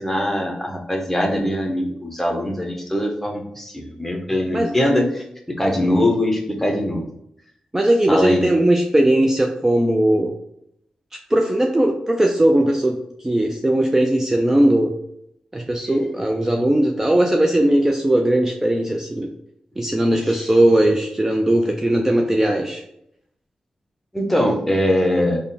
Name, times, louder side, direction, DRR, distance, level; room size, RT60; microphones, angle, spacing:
voice 1, 0.0-5.2 5.6-7.1 8.1-8.4 20.2-20.4 24.1-25.4, left 1 dB, 10° left, 1 dB, 0.9 m, -21 dB
voice 2, 4.5-4.8 7.7-10.3 11.3-13.0 13.2-14.9 15.5-19.3 19.8-22.8, right 1 dB, 15° right, 2 dB, 0.4 m, -18 dB
3.5 x 2.1 x 4.1 m, 0.76 s
cardioid pair, 55°, 2 cm